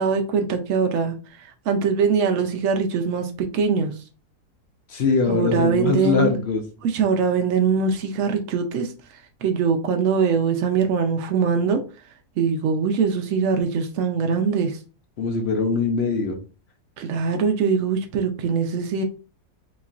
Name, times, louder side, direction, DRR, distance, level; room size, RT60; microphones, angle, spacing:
voice 1, 0.0-4.0 5.3-6.3 6.8-11.8 12.4-14.8 17.0-19.0, right 5 dB, 70° right, 4 dB, 0.7 m, -22 dB
voice 2, 4.9-6.6 15.2-16.4, left 4 dB, 65° left, 4 dB, 0.6 m, -22 dB
4.1 x 3.0 x 2.4 m, 0.35 s
omnidirectional pair, 1.7 m